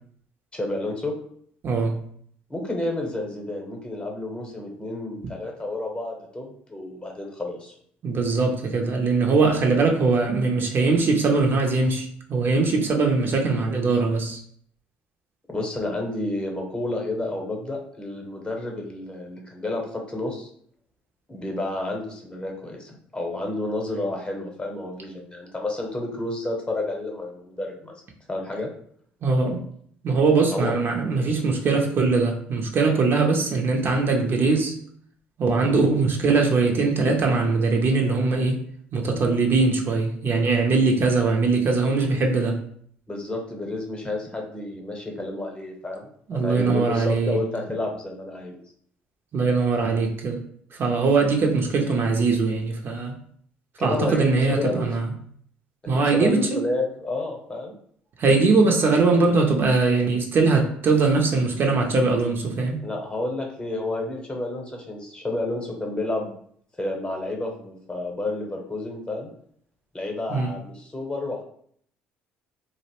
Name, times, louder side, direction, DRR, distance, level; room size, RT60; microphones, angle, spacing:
voice 1, 0.5-1.1 2.5-7.7 15.5-20.5 21.3-27.9 28.3-28.7 30.5-30.7 43.1-48.5 53.8-54.9 55.8-57.7 62.8-66.3 66.8-69.3 69.9-71.4, left 2 dB, 20° left, 1 dB, 0.8 m, -30 dB
voice 2, 1.6-2.0 8.0-14.4 29.2-29.6 30.0-34.7 35.4-38.6 38.9-42.6 46.3-47.4 49.3-50.4 50.8-53.1 53.8-55.1 55.9-56.6 58.2-62.8 70.3-70.5, right 3 dB, 45° right, 2 dB, 0.5 m, -21 dB
2.5 x 2.0 x 2.9 m, 0.62 s
hypercardioid pair, 60°, 5 cm